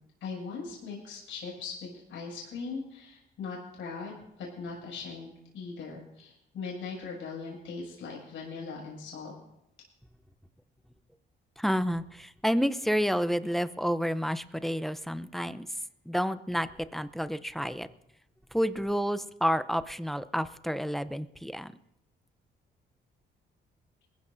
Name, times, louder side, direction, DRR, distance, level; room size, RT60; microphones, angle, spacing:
voice 1, 0.2-9.3, left 4 dB, 75° left, -3 dB, 6.4 m, -40 dB
voice 2, 11.6-15.7 16.1-17.9 18.5-21.7, equal, ahead, 13 dB, 0.7 m, -30 dB
21.5 x 15.0 x 2.7 m, 0.85 s
cardioid pair, 90°, 20 cm